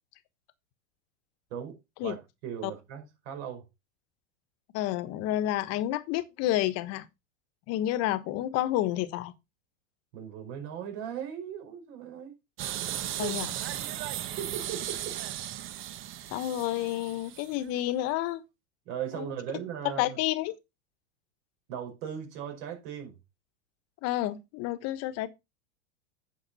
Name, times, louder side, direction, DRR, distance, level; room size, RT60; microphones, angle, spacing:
voice 1, 1.5-2.2 2.4-3.7 10.1-12.3 13.2-13.4 14.4-15.2 18.9-20.2 21.7-23.2, right 8 dB, 60° right, 5.2 m, -38 dB
voice 2, 4.7-7.1 7.7-9.3 13.2-13.5 16.3-18.4 19.1-19.3 20.0-20.6 24.0-25.3, left 14 dB, 45° left, 1.2 m, -30 dB
sound 1, 12.6-17.7, right 12 dB, 35° right, 1.1 m, -36 dB
9.5 x 6.5 x 4.1 m
hypercardioid pair, 115°, 34 cm